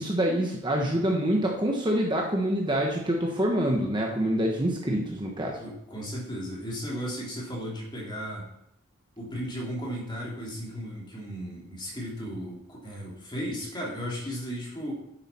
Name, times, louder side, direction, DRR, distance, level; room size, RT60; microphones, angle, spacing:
voice 1, 0.0-5.6, right 1 dB, 20° right, 0 dB, 1.2 m, -26 dB
voice 2, 5.5-8.5 9.2-14.9, equal, 20° left, -4 dB, 3.0 m, -35 dB
9.6 x 7.7 x 4.4 m, 0.78 s
head